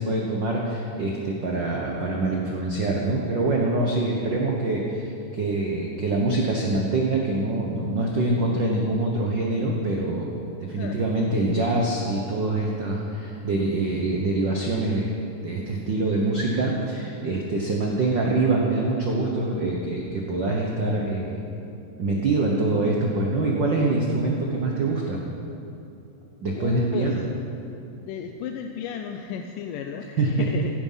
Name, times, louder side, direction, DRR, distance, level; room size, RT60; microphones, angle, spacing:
voice 1, 0.0-5.0 5.3-10.3 10.6-15.1 15.4-21.4 22.0-25.2 26.4-27.2 30.2-30.5, right 2 dB, 85° right, -1 dB, 1.0 m, -25 dB
voice 2, 26.5-27.1 28.1-30.7, left 8 dB, 85° left, 4 dB, 2.2 m, -33 dB
15.5 x 9.7 x 5.6 m, 2.8 s
omnidirectional pair, 3.8 m